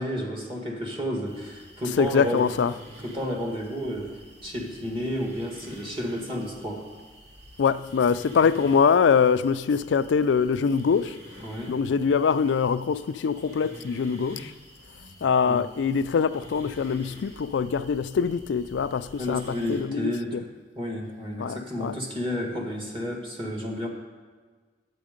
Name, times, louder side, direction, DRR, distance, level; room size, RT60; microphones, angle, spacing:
voice 1, 0.0-2.5 3.0-4.1 4.4-6.9 11.4-11.7 15.5-15.6 19.2-20.5 20.8-23.9, equal, 30° right, 1.8 m, -31 dB
sound 1, 1.2-19.8, equal, 85° right, 2.5 m, -48 dB
voice 2, 2.0-2.7 7.6-11.2 11.7-14.5 15.2-20.4 21.4-22.0, left 6 dB, 90° left, 0.4 m, -23 dB
11.0 x 8.4 x 5.1 m
head